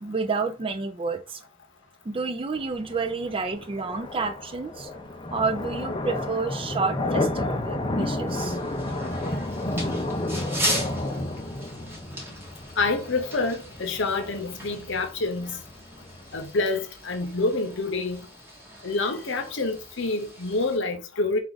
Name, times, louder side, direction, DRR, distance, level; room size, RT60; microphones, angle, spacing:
voice 1, 0.0-1.4 2.1-4.9 5.3-8.6, right 4 dB, 25° right, 0.4 m, -29 dB
sound 1, 2.5-16.5, left 1 dB, 25° left, 0.5 m, -31 dB
sound 2, 8.3-20.8, equal, 10° right, 0.9 m, -38 dB
voice 2, 12.8-15.6 16.3-18.3 18.8-21.4, left 3 dB, 65° left, 0.8 m, -27 dB
4.6 x 2.4 x 3.9 m
head